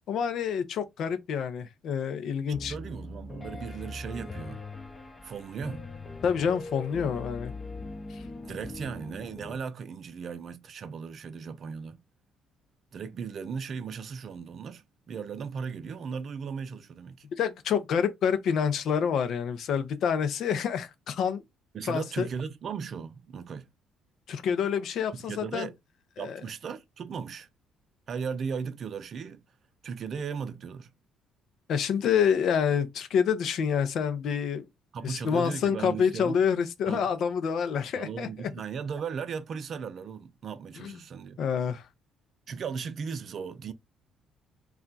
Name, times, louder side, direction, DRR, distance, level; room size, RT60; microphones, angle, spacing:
voice 1, 0.1-2.7 6.2-7.5 8.1-8.2 17.4-21.4 21.8-22.3 24.3-25.7 26.2-26.4 31.7-34.7 35.0-38.3 40.8-41.0 41.4-41.8, left 7 dB, 65° left, 0.6 m, -27 dB
Piano, 2.5-9.6, left 2 dB, 25° left, 0.6 m, -41 dB
voice 2, 2.7-4.6 5.2-5.9 8.4-12.0 12.9-17.3 21.7-23.7 25.1-25.7 26.2-27.5 28.1-29.4 29.8-30.9 34.9-36.4 36.9-37.1 38.0-41.4 42.5-43.7, right 6 dB, 55° right, 0.5 m, -37 dB
2.4 x 2.2 x 3.9 m
supercardioid pair, 65°, 0 cm